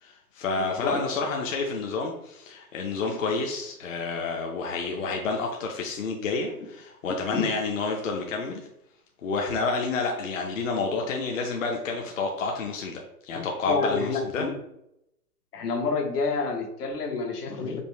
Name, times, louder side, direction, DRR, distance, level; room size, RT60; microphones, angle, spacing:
voice 1, 0.0-8.7 9.2-14.5, left 4 dB, 55° left, 1 dB, 0.7 m, -29 dB
voice 2, 0.6-1.0 7.3-7.4 13.3-14.5 15.5-17.8, left 4 dB, 75° left, 4 dB, 1.0 m, -28 dB
5.2 x 2.1 x 3.0 m, 0.80 s
hypercardioid pair, 155°, 47 cm